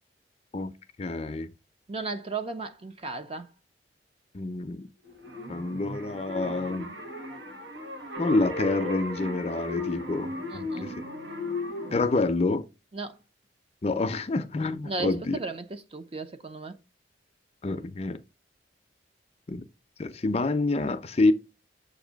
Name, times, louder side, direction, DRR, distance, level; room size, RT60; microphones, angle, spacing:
voice 1, 1.0-1.5 4.3-4.9 5.5-6.9 8.2-10.9 11.9-12.7 13.8-15.4 17.6-18.2 19.5-19.6 20.0-21.3, left 2 dB, 35° left, 0.5 m, -27 dB
voice 2, 1.9-3.5 10.5-10.9 12.9-13.2 14.8-16.8, right 3 dB, 35° right, 0.6 m, -35 dB
sound 1, 5.0-12.2, left 1 dB, 80° right, 1.4 m, -36 dB
7.2 x 2.6 x 5.0 m
head